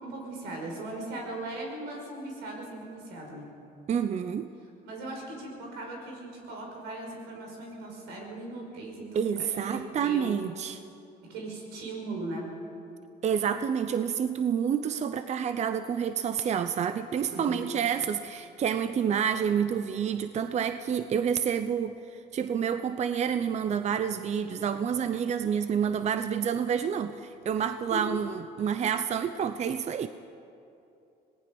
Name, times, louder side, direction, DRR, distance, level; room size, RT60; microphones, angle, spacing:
voice 1, 0.0-3.5 4.8-10.3 11.3-12.6 17.3-17.6 27.9-28.0, right 2 dB, 90° right, 1 dB, 5.5 m, -38 dB
voice 2, 3.9-4.5 9.1-10.8 13.2-30.1, right 8 dB, 40° right, 10 dB, 0.7 m, -28 dB
26.0 x 18.5 x 5.4 m, 2.7 s
cardioid pair, 110°, 17 cm